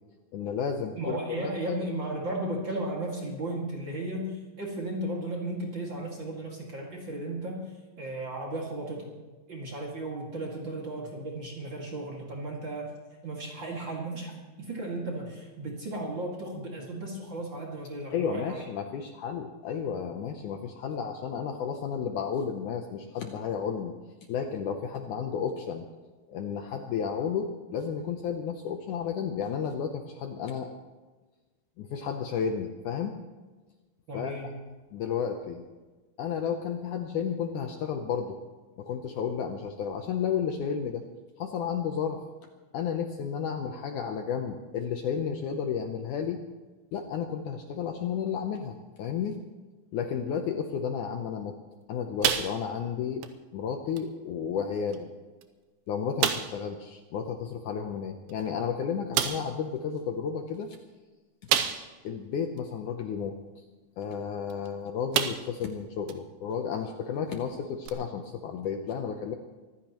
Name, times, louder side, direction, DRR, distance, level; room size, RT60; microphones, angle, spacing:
voice 1, 0.3-1.8 18.1-23.9 24.3-25.9 26.3-30.7 31.8-33.2 34.1-34.5 34.9-35.7 36.2-38.4 38.8-41.0 41.4-42.2 42.7-46.4 46.9-49.4 49.9-51.6 51.9-53.2 53.5-55.1 55.9-60.8 62.0-63.6 64.0-69.4, left 7 dB, 70° left, 5 dB, 2.0 m, -32 dB
voice 2, 0.9-7.7 8.0-9.1 9.5-12.9 13.2-18.6 34.1-34.5, right 1 dB, 35° right, -2 dB, 2.3 m, -35 dB
sound 1, 52.2-52.9 53.2-53.4 54.0-54.1 54.9-55.0 55.4-55.5 56.2-56.6 58.3-58.4 59.1-59.5 61.5-62.1 62.6-62.7 64.5-64.7 65.1-65.6 66.1-66.2 67.8-67.9, right 10 dB, 85° right, 2.7 m, -28 dB
24.5 x 15.0 x 3.1 m, 1.3 s
omnidirectional pair, 4.3 m